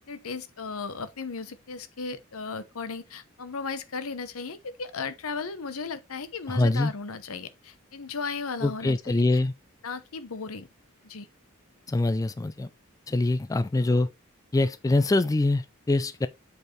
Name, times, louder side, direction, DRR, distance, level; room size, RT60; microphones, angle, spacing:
voice 1, 0.1-9.4 9.8-10.7 11.0-11.3, left 4 dB, 85° left, 0.9 m, -36 dB
voice 2, 6.5-6.9 8.6-9.5 11.9-12.7 13.1-14.1 14.5-16.3, left 2 dB, 15° left, 0.3 m, -24 dB
7.9 x 4.6 x 3.2 m
head